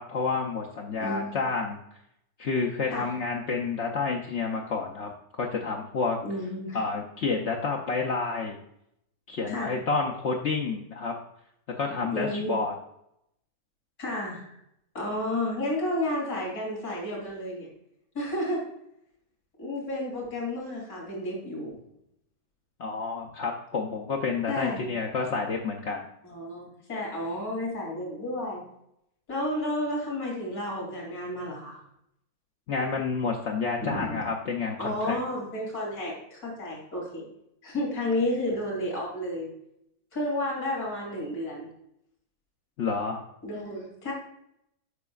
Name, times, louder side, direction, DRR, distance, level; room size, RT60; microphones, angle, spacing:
voice 1, 0.0-1.8 2.4-6.2 6.7-8.6 9.3-11.1 11.8-12.7 22.8-26.1 32.7-35.2 42.8-43.2, left 4 dB, 60° left, -1 dB, 0.9 m, -29 dB
voice 2, 1.0-1.3 2.9-3.1 6.2-6.8 9.5-9.7 12.1-12.6 14.0-14.5 14.9-17.7 18.1-18.6 19.6-21.8 24.5-24.8 26.2-28.6 29.3-31.8 33.8-34.2 34.8-37.3 37.6-39.5 40.1-41.7 43.4-44.1, left 1 dB, 80° left, -3 dB, 3.4 m, -31 dB
8.2 x 5.9 x 2.3 m, 0.77 s
omnidirectional pair, 1.6 m